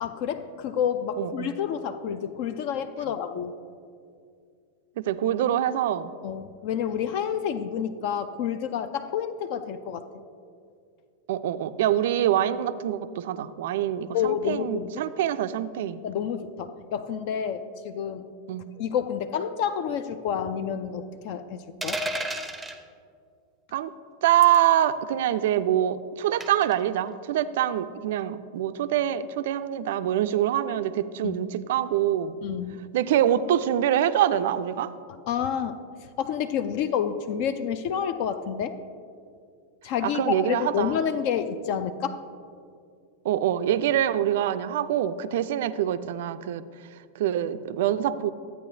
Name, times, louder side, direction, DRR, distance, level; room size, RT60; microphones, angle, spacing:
voice 1, 0.0-3.5 6.2-10.1 14.1-15.0 16.0-18.2 18.8-22.0 31.2-31.4 32.4-32.8 35.3-35.8 36.2-38.7 39.8-42.2, left 8 dB, 45° left, 10 dB, 0.4 m, -29 dB
voice 2, 1.2-1.5 5.0-6.1 11.3-16.0 18.5-18.7 23.7-23.9 24.2-32.4 32.9-34.9 40.0-41.0 43.2-46.6 47.2-48.3, right 11 dB, 55° right, 13 dB, 0.3 m, -25 dB
sound 1, 21.8-22.8 24.4-24.7 26.4-26.7, right 1 dB, 5° right, 0.6 m, -31 dB
13.0 x 8.7 x 2.7 m, 2.3 s
figure-of-eight pair, 90°, 0 cm